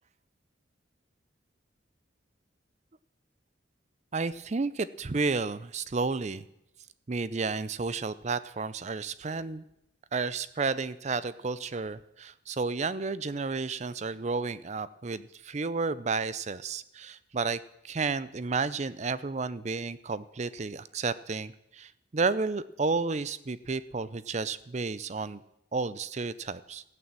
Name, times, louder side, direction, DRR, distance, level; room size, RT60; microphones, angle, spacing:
voice 1, 4.1-6.5 7.1-9.6 10.1-17.6 17.8-25.4 25.7-26.8, right 4 dB, 35° right, 16 dB, 0.5 m, -32 dB
14.5 x 8.9 x 7.5 m, 0.81 s
head